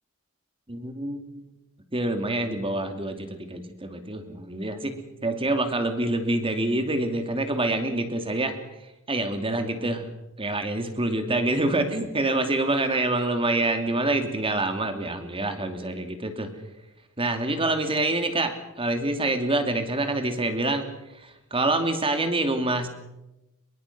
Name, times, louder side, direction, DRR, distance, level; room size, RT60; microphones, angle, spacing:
voice 1, 0.7-1.5 1.9-8.6 9.1-10.1 10.4-16.5 17.2-22.9, right 2 dB, 25° right, 7 dB, 2.6 m, -26 dB
24.0 x 22.5 x 6.0 m, 0.96 s
head